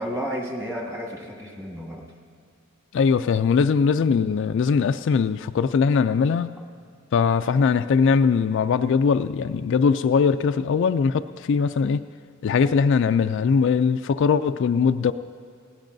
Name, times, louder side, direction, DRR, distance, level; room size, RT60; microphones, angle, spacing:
voice 1, 0.0-2.1, equal, 15° right, 1.9 m, -32 dB
voice 2, 2.9-6.6 7.1-12.0 12.4-15.1, left 5 dB, 60° left, 0.3 m, -21 dB
19.0 x 17.0 x 2.7 m
head